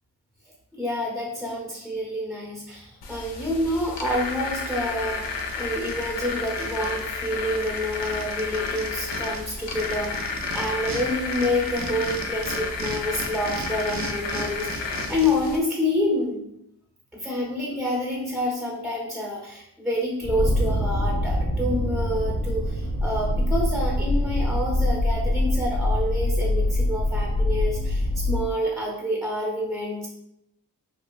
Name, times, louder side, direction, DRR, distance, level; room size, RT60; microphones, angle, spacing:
voice 1, 0.7-16.5 17.1-30.1, left 1 dB, ahead, -3 dB, 0.6 m, -28 dB
sound 1, 3.0-15.6, left 4 dB, 90° left, 0.5 m, -32 dB
sound 2, 4.7-4.8 5.1-7.0 7.3-7.4 7.6-11.0 11.3-15.6, right 3 dB, 45° right, 0.5 m, -36 dB
sound 3, 20.2-28.5, left 1 dB, 40° left, 0.7 m, -24 dB
3.1 x 2.3 x 2.4 m, 0.78 s
cardioid pair, 60°, 42 cm